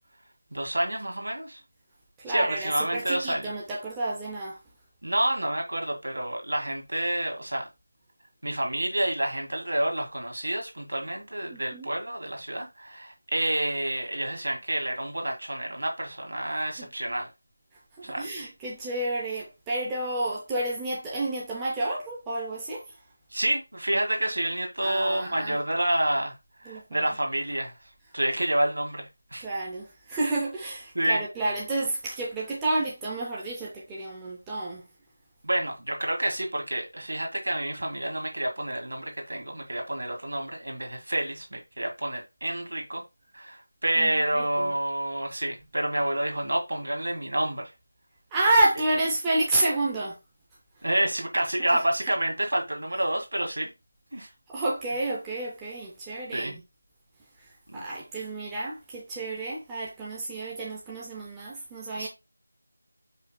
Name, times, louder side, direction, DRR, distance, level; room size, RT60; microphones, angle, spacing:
voice 1, 0.5-1.6 2.3-3.5 5.0-7.7 8.4-17.3 18.0-18.2 23.3-29.5 30.9-31.2 35.4-43.0 43.3-47.7 50.8-53.7 54.1-54.3 56.3-56.5 57.7-57.9 62.0-62.1, right 1 dB, 70° right, 1.6 m, -29 dB
voice 2, 2.2-4.6 11.5-11.9 16.8-16.9 18.0-22.8 24.8-25.6 26.7-27.1 29.4-34.8 44.0-44.7 48.3-50.2 51.7-51.8 54.2-56.6 57.4-62.1, right 2 dB, 5° right, 0.3 m, -30 dB
4.9 x 2.1 x 4.1 m
figure-of-eight pair, 180°, 0 cm